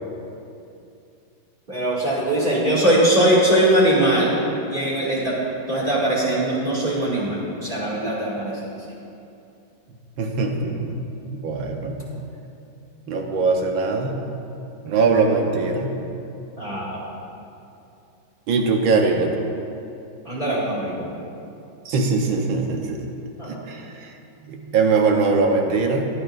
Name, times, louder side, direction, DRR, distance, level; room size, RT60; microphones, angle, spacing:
voice 1, 1.7-4.3 4.7-5.4 5.7-8.7 16.6-17.0 20.2-21.0 23.4-23.6, right 1 dB, 25° right, -7 dB, 2.5 m, -21 dB
voice 2, 10.2-11.0 11.3-12.0 13.1-14.2 14.8-16.0 18.5-19.3 21.9-23.0 23.5-24.1 24.4-26.1, right 4 dB, 80° right, 2 dB, 1.9 m, -21 dB
22.5 x 8.7 x 2.6 m, 2.7 s
omnidirectional pair, 2.1 m